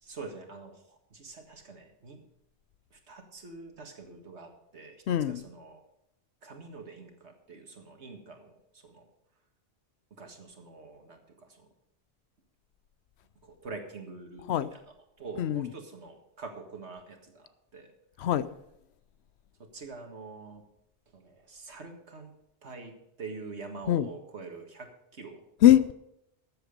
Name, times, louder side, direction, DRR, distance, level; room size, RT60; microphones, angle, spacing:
voice 1, 0.0-2.2 2.9-5.8 6.4-9.1 10.1-11.7 13.4-14.8 15.2-17.9 19.6-20.6 21.1-22.3 22.6-25.4, right 4 dB, 85° right, 2.0 m, -45 dB
voice 2, 5.1-5.4 14.5-14.7 15.4-15.7 18.2-18.5 23.9-24.1 25.6-25.9, left 12 dB, 80° left, 0.8 m, -22 dB
13.5 x 8.0 x 5.2 m
omnidirectional pair, 1.1 m